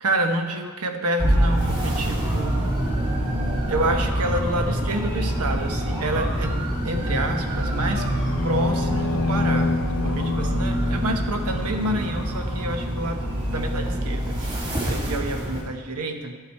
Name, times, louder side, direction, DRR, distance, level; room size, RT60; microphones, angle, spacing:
voice 1, 0.0-2.6 3.7-6.6 6.8-8.1 8.4-14.4 14.9-16.4, right 1 dB, 85° right, 5 dB, 1.0 m, -28 dB
sound 1, 1.2-15.6, equal, 20° right, 2.2 m, -25 dB
sound 2, 8.1-12.4, left 3 dB, 75° left, 0.5 m, -28 dB
12.0 x 5.7 x 4.5 m, 1.5 s
head